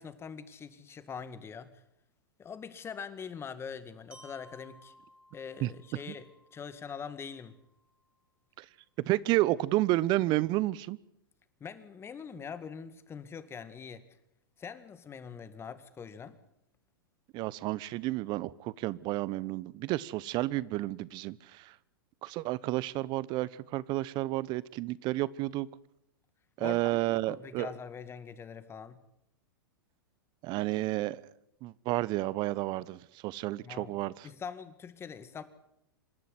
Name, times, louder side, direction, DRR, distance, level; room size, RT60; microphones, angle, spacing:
voice 1, 0.0-1.7 2.4-4.9 5.3-7.6 11.6-14.0 14.6-16.4 26.6-27.0 27.3-29.0 33.6-34.0 34.2-35.4, left 6 dB, 20° left, 12 dB, 2.0 m, -43 dB
Glockenspiel, 4.1-8.1, equal, 10° right, 4.2 m, -59 dB
voice 2, 9.1-11.0 17.3-21.7 22.2-25.7 26.6-27.7 30.4-31.2 31.6-34.3, right 17 dB, 40° right, 21 dB, 0.9 m, -31 dB
26.5 x 12.0 x 9.8 m, 0.81 s
hypercardioid pair, 105°, 12 cm